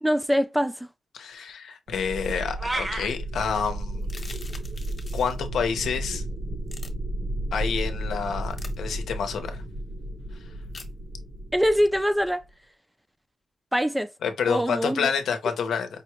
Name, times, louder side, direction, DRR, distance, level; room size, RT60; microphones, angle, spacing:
voice 1, 0.0-0.9 11.5-12.4 13.7-14.1 14.5-15.1, equal, 5° right, 0.4 m, -23 dB
voice 2, 1.1-4.1 5.1-6.2 7.5-9.6 14.2-15.9, left 6 dB, 90° left, 0.7 m, -28 dB
sound 1, 1.9-12.5, right 1 dB, 60° right, 1.3 m, -33 dB
sound 2, 2.6-3.1, right 1 dB, 25° right, 0.8 m, -29 dB
sound 3, 4.0-5.4 6.7-6.9 8.5-8.8 10.7-10.9, left 4 dB, 40° left, 1.1 m, -43 dB
5.1 x 2.3 x 3.0 m
cardioid pair, 90°, 0 cm